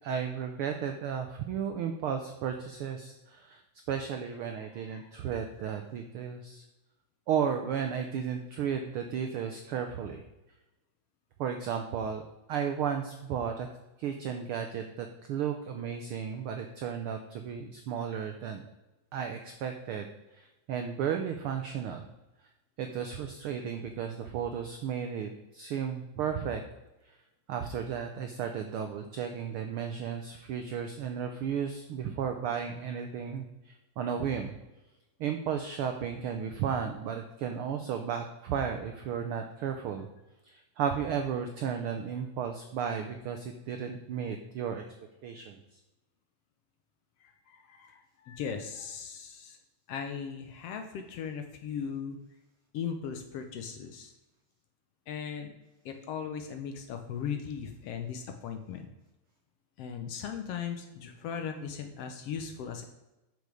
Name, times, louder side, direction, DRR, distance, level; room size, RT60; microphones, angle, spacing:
voice 1, 0.0-3.6 3.9-6.6 7.3-10.2 11.4-12.2 12.5-13.7 14.0-18.6 19.1-20.1 20.3-22.1 22.8-26.6 27.0-27.1 27.5-34.5 35.2-40.1 40.4-44.8 45.2-45.5, right 7 dB, 85° right, 6 dB, 1.2 m, -34 dB
voice 2, 4.7-5.1 47.2-49.6 49.9-52.2 52.7-54.1 55.1-55.5 55.8-58.9 59.8-62.8, left 7 dB, 70° left, 6 dB, 1.6 m, -38 dB
8.2 x 6.8 x 4.9 m, 1.0 s
omnidirectional pair, 3.3 m